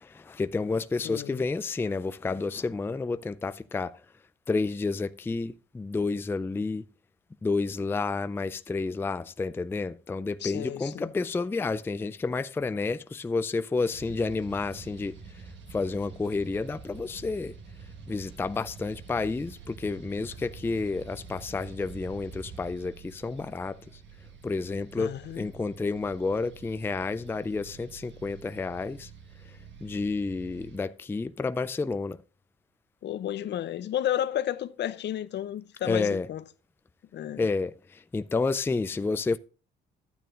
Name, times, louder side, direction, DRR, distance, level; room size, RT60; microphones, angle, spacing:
voice 1, 0.0-4.0 4.5-6.8 7.4-15.1 15.7-17.5 18.1-23.8 24.4-29.1 29.8-32.2 35.8-36.3 37.4-39.4, left 3 dB, 10° left, 0.3 m, -30 dB
voice 2, 1.0-1.4 10.4-11.1 25.0-25.5 33.0-36.4 37.1-37.5, left 11 dB, 60° left, 0.6 m, -32 dB
sound 1, 13.9-30.8, right 5 dB, 65° right, 1.5 m, -47 dB
12.0 x 9.2 x 2.5 m
cardioid pair, 90°, 20 cm